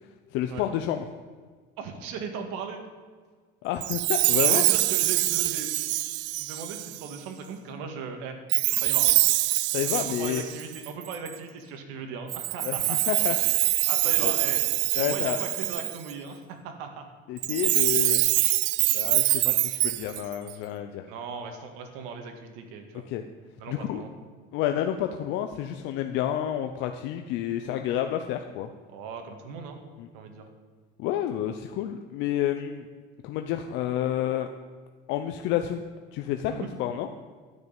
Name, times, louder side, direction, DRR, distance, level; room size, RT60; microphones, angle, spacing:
voice 1, 0.3-1.1 3.6-4.7 9.7-10.4 12.6-13.4 14.2-14.3 14.9-15.4 17.3-18.2 18.9-21.0 23.1-23.2 23.7-24.0 24.5-28.7 30.0-30.1 31.0-32.9 33.2-34.5 35.1-35.8 36.1-37.1, left 11 dB, 70° left, 6 dB, 0.8 m, -29 dB
voice 2, 1.8-2.8 4.4-5.7 6.4-8.4 8.8-9.1 9.9-13.0 13.4-13.6 13.9-14.7 14.9-17.1 21.1-23.1 23.6-24.1 28.9-29.8 30.1-30.5 36.5-36.7, right 5 dB, 85° right, 5 dB, 2.0 m, -38 dB
Chime, 3.8-7.2 8.5-11.4 12.3-16.1 17.4-20.5, right 20 dB, 65° right, 0.5 m, -24 dB
12.5 x 6.5 x 8.9 m, 1.5 s
cardioid pair, 130°, 20 cm